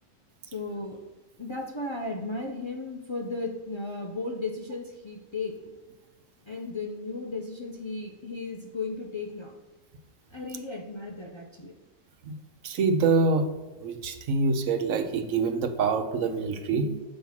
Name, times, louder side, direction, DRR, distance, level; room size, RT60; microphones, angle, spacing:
voice 1, 0.5-1.0 1.4-5.7 6.5-9.5 10.3-11.7 16.7-17.0, left 3 dB, 30° left, 1 dB, 0.5 m, -35 dB
voice 2, 12.6-13.5 13.8-16.9, right 4 dB, 80° right, 7 dB, 1.1 m, -25 dB
7.1 x 3.3 x 5.7 m, 1.2 s
omnidirectional pair, 1.3 m